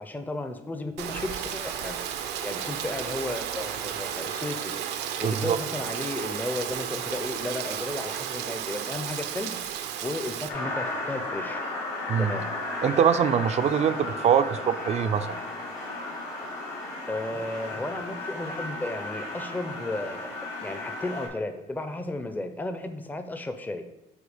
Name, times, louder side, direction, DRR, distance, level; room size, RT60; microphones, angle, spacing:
voice 1, 0.0-2.0 2.4-4.7 5.2-9.6 10.0-11.6 12.2-12.5 17.1-23.8, left 2 dB, 10° left, 8 dB, 0.5 m, -34 dB
Rain, 1.0-10.5, right 9 dB, 80° right, 0.6 m, -33 dB
voice 2, 5.2-5.6 12.1-12.3 12.8-15.4, right 8 dB, 40° right, 11 dB, 0.4 m, -23 dB
sound 1, 10.5-21.3, left 2 dB, 85° left, 2.3 m, -34 dB
8.0 x 2.8 x 5.0 m, 0.89 s
cardioid pair, 110°, 17 cm